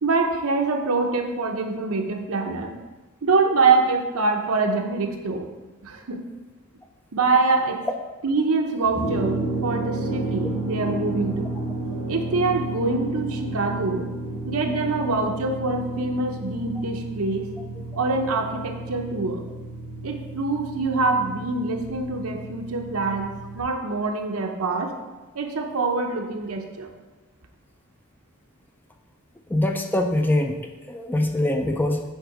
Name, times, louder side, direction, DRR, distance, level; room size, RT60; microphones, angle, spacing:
voice 1, 0.0-2.7 3.2-5.5 5.8-6.3 7.1-7.8 8.2-11.5 12.1-14.1 14.4-17.5 18.0-19.4 20.0-24.9 25.3-26.9, right 3 dB, 75° right, 3 dB, 0.8 m, -24 dB
sound 1, 8.8-23.6, right 2 dB, 85° left, 2.2 m, -32 dB
voice 2, 29.5-30.5 30.9-32.0, left 1 dB, 10° left, 4 dB, 0.4 m, -23 dB
8.1 x 3.7 x 4.9 m, 1.2 s
head